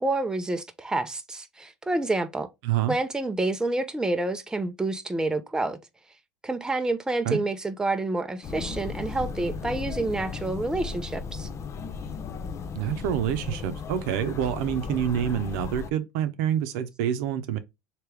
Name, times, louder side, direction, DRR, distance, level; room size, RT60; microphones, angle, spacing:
voice 1, 0.0-2.5 2.9-5.8 6.4-11.5, right 2 dB, 10° right, 0.6 m, -28 dB
voice 2, 2.6-2.9 7.2-7.4 12.7-17.6, right 10 dB, 70° right, 0.7 m, -27 dB
sound 1, 8.4-15.9, left 5 dB, 35° left, 0.6 m, -35 dB
3.3 x 2.9 x 4.6 m
hypercardioid pair, 95°, 9 cm